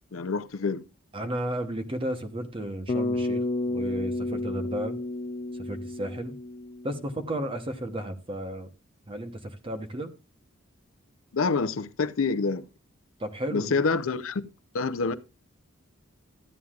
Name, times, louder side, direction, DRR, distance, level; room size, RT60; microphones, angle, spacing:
voice 1, 0.1-0.8 11.3-12.6 13.5-15.1, left 4 dB, 80° left, 0.6 m, -27 dB
voice 2, 1.1-5.0 5.5-6.4 6.8-8.7 9.1-10.1 13.2-13.7, right 1 dB, 25° right, 0.9 m, -33 dB
Bass guitar, 2.9-7.3, left 2 dB, 35° left, 0.5 m, -31 dB
13.0 x 9.4 x 2.4 m
head